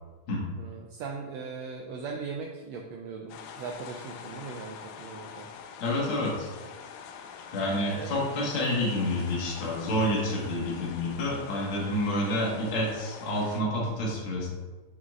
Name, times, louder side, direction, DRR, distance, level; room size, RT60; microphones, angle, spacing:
voice 1, 0.6-5.5 7.9-8.2, right 5 dB, 80° right, 2 dB, 1.5 m, -39 dB
sound 1, 3.3-13.6, left 6 dB, 80° left, 1.8 m, -45 dB
voice 2, 5.8-6.5 7.5-14.5, left 1 dB, 50° left, -4 dB, 2.1 m, -28 dB
9.3 x 5.9 x 2.5 m, 1.3 s
omnidirectional pair, 3.5 m